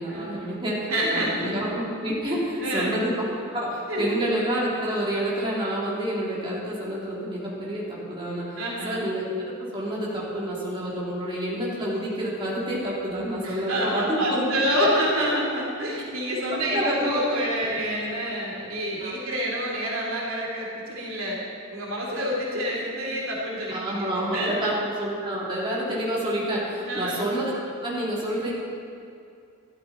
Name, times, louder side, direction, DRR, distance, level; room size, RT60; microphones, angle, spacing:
voice 1, 0.0-3.3 3.5-9.3 9.7-14.9 16.7-17.2 19.0-19.1 22.1-22.2 23.7-24.7 25.0-27.5 27.8-28.5, right 1 dB, 25° right, -7 dB, 3.2 m, -28 dB
voice 2, 0.9-1.5 2.4-2.9 3.9-4.2 8.6-9.1 13.4-21.4 21.7-24.7 26.8-27.2, equal, 75° right, -3 dB, 2.7 m, -28 dB
13.5 x 13.0 x 4.3 m, 2.5 s
head